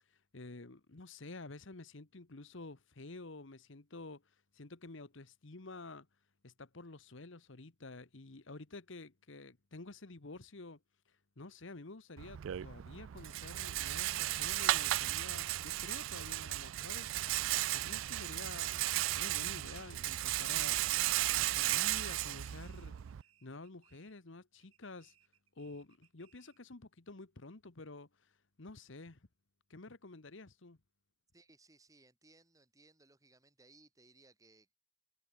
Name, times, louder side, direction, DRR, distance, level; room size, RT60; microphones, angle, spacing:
voice 1, 0.1-6.1 6.4-10.8 11.4-20.8 21.4-22.9 23.4-25.1 25.6-29.3 29.7-30.8, left 3 dB, 60° left, 1.2 m, -50 dB
Rattle, 12.2-23.2, right 15 dB, 65° right, 0.4 m, -35 dB
sound 1, 22.5-24.3 24.6-26.7, right 11 dB, 85° right, 6.1 m, -71 dB
voice 2, 31.3-34.8, right 2 dB, 15° right, 2.9 m, -64 dB
head